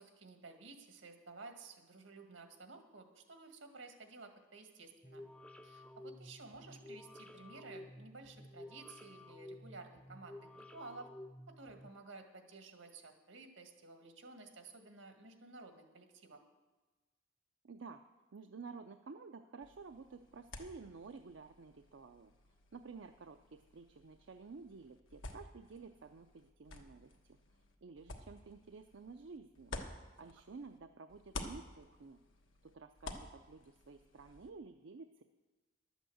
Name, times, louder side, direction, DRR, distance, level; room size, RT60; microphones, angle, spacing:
voice 1, 0.0-5.3 5.6-11.1 11.5-16.4 30.2-30.3, right 3 dB, 90° right, 5 dB, 1.9 m, -54 dB
sound 1, 5.0-11.9, left 1 dB, 5° left, 0.4 m, -53 dB
voice 2, 17.6-18.0 18.3-22.3 22.7-27.4 27.8-29.7 30.2-32.2 32.6-35.2, right 4 dB, 70° right, 7 dB, 0.5 m, -52 dB
sound 2, 19.6-30.8 31.1-34.5, left 2 dB, 90° left, 1.4 m, -52 dB
12.0 x 8.1 x 7.8 m, 1.2 s
head